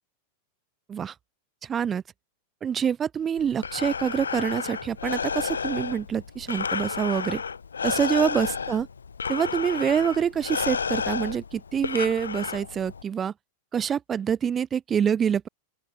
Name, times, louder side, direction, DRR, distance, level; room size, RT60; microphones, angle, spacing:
voice 1, 1.6-2.0 2.6-7.4 7.8-8.9 9.3-13.3 13.7-15.5, right 8 dB, 20° right, 2.3 m, -26 dB
Breathing, 3.4-13.0, left 6 dB, 75° left, 6.2 m, -31 dB
open air
figure-of-eight pair, 90°, 0 cm